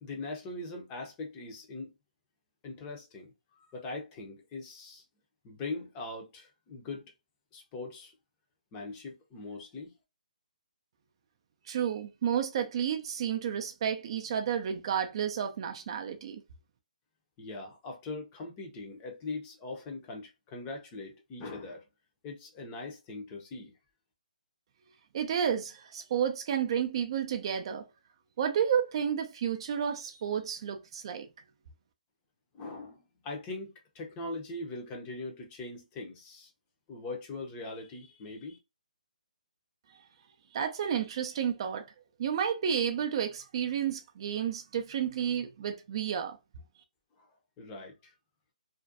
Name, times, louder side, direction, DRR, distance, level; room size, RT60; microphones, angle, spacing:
voice 1, 0.0-1.9 2.6-3.3 3.6-5.0 5.4-7.1 7.5-8.1 8.7-10.0 17.4-21.8 22.2-23.7 32.5-36.5 36.9-38.6 47.2-47.3 47.6-48.1, left 3 dB, 20° left, 0.5 m, -41 dB
voice 2, 11.7-16.4 25.1-27.9 28.4-31.3 40.5-41.9 42.2-46.4, right 8 dB, 40° right, 0.3 m, -31 dB
2.5 x 2.2 x 2.4 m
hypercardioid pair, 155°, 4 cm